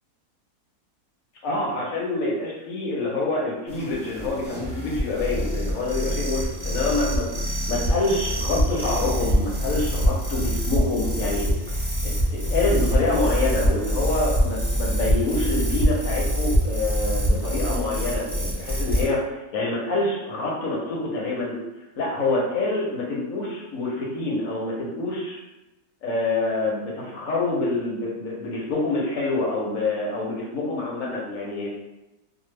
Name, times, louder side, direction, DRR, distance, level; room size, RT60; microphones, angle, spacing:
voice 1, 1.4-11.5 11.7-21.6 22.0-25.4 26.0-31.7, left 2 dB, 65° left, -3 dB, 1.0 m, -26 dB
sound 1, 3.7-19.1, equal, 20° left, 0.6 m, -25 dB
2.7 x 2.3 x 3.1 m, 0.99 s
omnidirectional pair, 1.7 m